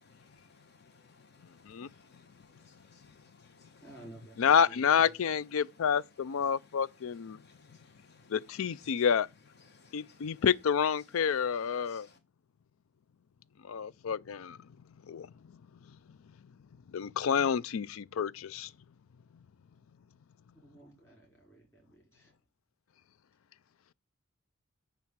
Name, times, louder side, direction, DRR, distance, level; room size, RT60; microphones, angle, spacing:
voice 1, 0.2-3.9 6.5-9.1 9.6-10.4 11.2-11.3 11.8-12.2, left 4 dB, 50° left, 1.5 m, -62 dB
voice 2, 3.8-5.3 20.6-22.3, right 2 dB, 10° left, 5.4 m, -53 dB
voice 3, 4.4-7.4 8.3-9.3 9.9-12.1 13.7-14.6 15.1-15.3 16.9-18.7, left 7 dB, 80° left, 0.4 m, -29 dB
10.5 x 3.5 x 7.2 m
head